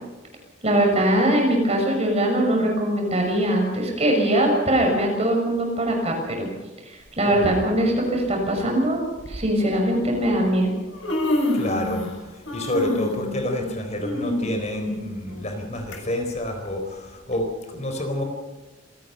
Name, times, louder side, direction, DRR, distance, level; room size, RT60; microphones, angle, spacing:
voice 1, 0.6-6.5 6.9-10.7, right 1 dB, 35° right, 1 dB, 6.6 m, -21 dB
Human voice, 7.2-7.4 8.5-8.6 9.2-9.4 10.4-10.5 10.8-12.2 12.4-16.0 16.4-16.5 17.3-17.4, left 1 dB, 85° left, 6.3 m, -28 dB
voice 2, 11.5-12.0 12.5-18.2, left 1 dB, 35° left, 5 dB, 4.2 m, -28 dB
27.5 x 18.0 x 5.7 m, 1.2 s
head